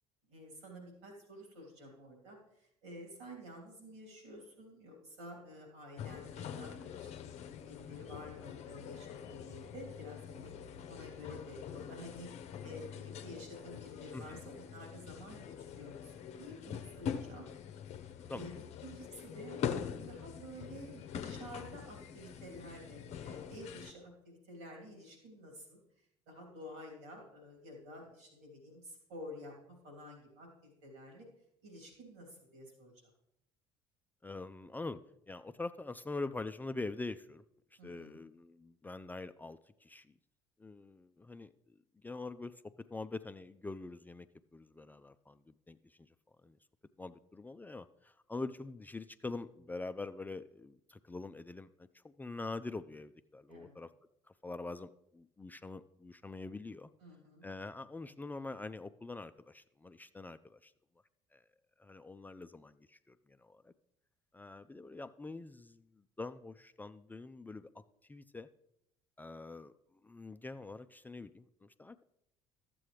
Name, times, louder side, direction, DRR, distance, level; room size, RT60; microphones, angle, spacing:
voice 1, 0.3-10.5 10.9-12.3 12.6-17.5 18.3-18.5 18.8-25.8 26.3-31.3 31.6-32.9 37.8-38.2 53.5-53.7 57.0-57.5, equal, 80° right, 1 dB, 3.0 m, -50 dB
sound 1, 6.0-23.9, left 8 dB, 55° left, 0.7 m, -44 dB
voice 2, 34.2-35.0 35.3-37.4 37.7-40.1 40.6-42.5 42.9-44.3 44.5-46.1 46.4-46.6 47.0-53.9 54.4-56.9 57.4-60.7 61.3-61.4 61.8-63.7 64.3-67.8 68.1-68.5 69.2-72.0, left 3 dB, 15° left, 11 dB, 0.4 m, -44 dB
12.5 x 7.7 x 3.2 m, 0.80 s
hypercardioid pair, 60°, 14 cm